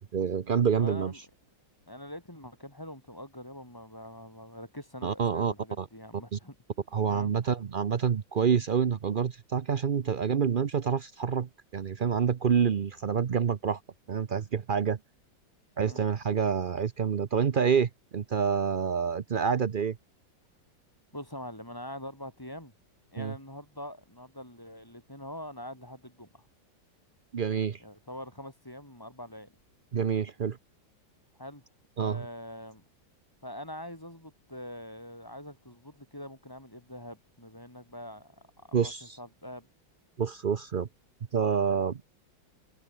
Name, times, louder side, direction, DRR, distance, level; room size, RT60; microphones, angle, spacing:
voice 1, 0.1-1.1 5.0-5.9 6.3-6.4 6.9-13.8 14.1-15.0 15.8-20.0 23.2-23.3 27.3-27.8 29.9-30.6 32.0-32.2 38.7-39.2 40.2-40.9 41.3-42.0, right 7 dB, 70° right, 0.4 m, -27 dB
voice 2, 0.8-1.2 1.9-6.6 7.1-7.3 15.8-16.1 21.1-22.7 23.1-26.4 27.8-29.5 31.4-31.6 32.0-32.8 33.4-39.7, left 1 dB, 10° left, 4.5 m, -44 dB
omnidirectional pair, 2.1 m